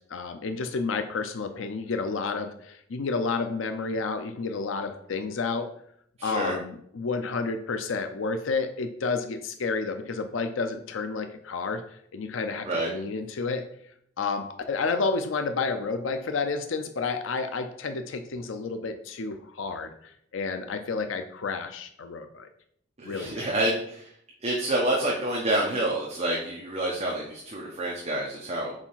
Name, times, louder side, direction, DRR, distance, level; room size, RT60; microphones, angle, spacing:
voice 1, 0.1-5.7 6.2-13.6 14.2-22.5 23.0-23.5, left 4 dB, 75° left, 8 dB, 0.5 m, -30 dB
voice 2, 6.2-6.5 12.6-12.9 23.0-24.1 24.4-28.7, right 1 dB, 35° right, -3 dB, 1.0 m, -28 dB
4.9 x 4.3 x 5.6 m, 0.68 s
head